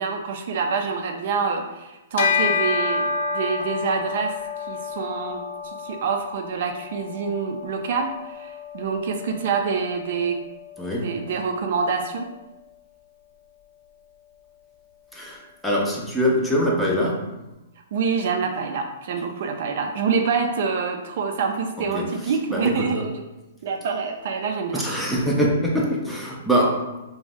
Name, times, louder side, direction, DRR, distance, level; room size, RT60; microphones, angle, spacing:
voice 1, 0.0-4.4 4.7-10.4 11.0-12.3 17.9-23.1 23.6-24.8, right 5 dB, 60° right, 4 dB, 0.3 m, -26 dB
Bell, 2.2-11.9, left 5 dB, 60° left, 0.3 m, -30 dB
voice 2, 10.8-11.2 15.1-17.4 21.8-22.2 22.5-23.1 24.7-26.9, equal, 5° left, -3 dB, 0.5 m, -24 dB
2.5 x 2.0 x 3.7 m, 1.0 s
hypercardioid pair, 140°, 0 cm